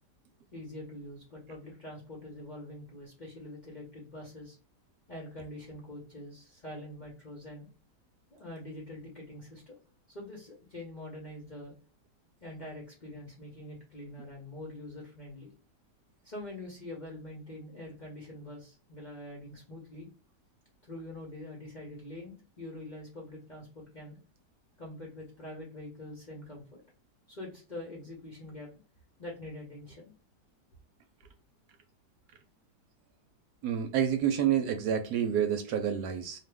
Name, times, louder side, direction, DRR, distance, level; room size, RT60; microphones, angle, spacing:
voice 1, 0.5-4.6 5.1-7.7 8.3-9.7 10.1-11.7 12.4-15.5 16.2-20.1 20.8-24.2 24.8-26.8 27.3-28.7 29.2-30.1, left 1 dB, 40° left, 0.7 m, -44 dB
voice 2, 33.6-36.4, right 9 dB, 75° right, 1.0 m, -28 dB
2.7 x 2.4 x 3.2 m
omnidirectional pair, 1.8 m